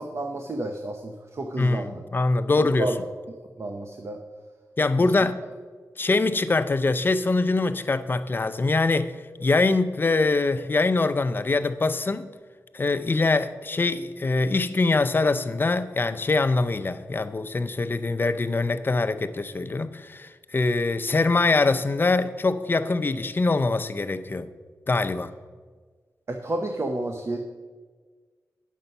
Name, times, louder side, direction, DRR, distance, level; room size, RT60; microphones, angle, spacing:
voice 1, 0.0-2.0 2.6-3.0 3.6-4.2 5.0-5.3 26.3-27.4, right 2 dB, 50° right, 0.8 m, -31 dB
voice 2, 1.6-2.9 4.8-5.4 6.0-9.1 9.4-12.3 12.7-24.5 24.9-25.3, left 3 dB, 35° left, 0.5 m, -23 dB
9.3 x 6.8 x 5.4 m
wide cardioid pair, 100°, 6 cm